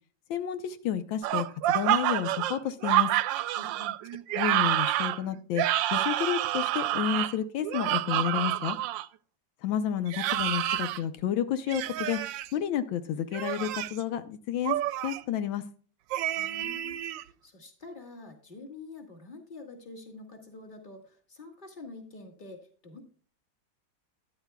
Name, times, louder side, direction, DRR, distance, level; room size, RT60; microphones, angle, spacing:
voice 1, 0.3-3.1 4.3-5.6 5.9-8.8 9.6-12.2 12.5-14.8 15.0-15.6, left 10 dB, 85° left, 10 dB, 1.5 m, -30 dB
sound 1, 1.2-9.1 10.1-11.0 11.7-12.5 13.3-14.0 14.7-15.2 16.1-17.2, right 14 dB, 80° right, 1.3 m, -28 dB
voice 2, 3.6-4.0 16.4-17.0 17.4-23.0, left 3 dB, 25° left, 3 dB, 2.1 m, -46 dB
13.0 x 10.5 x 2.2 m, 0.41 s
omnidirectional pair, 2.1 m